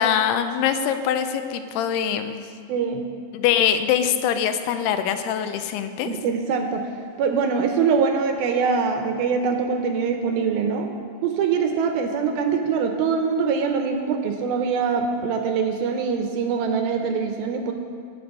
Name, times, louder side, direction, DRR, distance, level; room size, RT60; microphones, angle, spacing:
voice 1, 0.0-2.5 3.3-6.1, left 9 dB, 80° left, 8 dB, 2.5 m, -23 dB
voice 2, 2.7-3.0 6.1-6.9 7.2-10.9 11.2-17.7, right 5 dB, 75° right, 5 dB, 2.3 m, -23 dB
19.5 x 6.9 x 5.3 m, 2.3 s
omnidirectional pair, 4.9 m